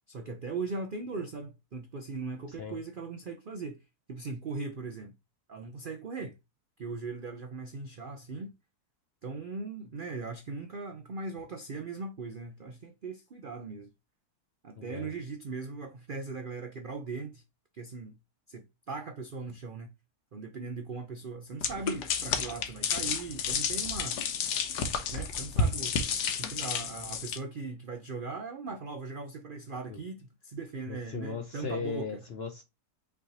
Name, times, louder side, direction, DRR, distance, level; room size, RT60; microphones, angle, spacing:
voice 1, 0.1-3.8 4.1-5.1 5.5-6.3 6.8-8.5 9.2-13.9 14.6-17.4 17.7-18.2 18.5-19.9 20.3-24.2 25.1-26.0 26.4-32.2, right 4 dB, 65° right, 0.5 m, -39 dB
voice 2, 2.5-2.8 14.8-15.1 29.9-30.0 30.9-32.6, left 5 dB, 60° left, 0.7 m, -37 dB
sound 1, 21.6-27.4, left 5 dB, 90° left, 1.4 m, -31 dB
5.4 x 3.4 x 2.8 m
omnidirectional pair, 1.7 m